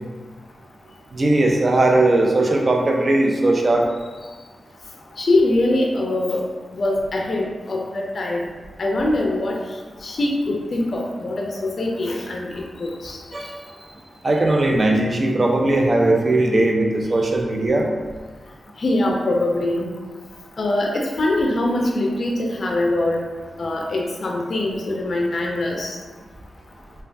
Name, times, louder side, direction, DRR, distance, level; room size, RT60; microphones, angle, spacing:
voice 1, 1.1-3.9 13.3-13.5 14.2-17.9, right 2 dB, 45° right, 1 dB, 0.5 m, -18 dB
voice 2, 5.2-6.4 6.7-8.4 8.8-9.6 10.0-13.2 18.8-19.8 20.6-23.2 23.6-25.9, left 2 dB, 60° left, 0 dB, 0.4 m, -23 dB
3.2 x 2.2 x 2.5 m, 1.4 s
cardioid pair, 50°, 0 cm